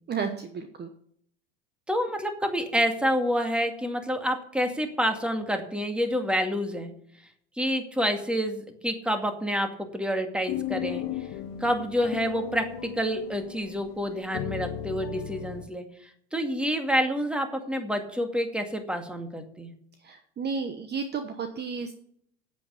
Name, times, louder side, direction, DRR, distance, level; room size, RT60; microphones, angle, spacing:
voice 1, 0.1-0.9 20.0-21.9, right 5 dB, 30° right, 7 dB, 1.1 m, -32 dB
voice 2, 1.9-6.9 7.6-11.1 11.6-19.7, equal, 5° right, 5 dB, 2.2 m, -28 dB
sound 1, 10.5-15.6, left 11 dB, 60° left, 1.2 m, -36 dB
8.9 x 8.5 x 7.0 m, 0.65 s
hypercardioid pair, 85°, 33 cm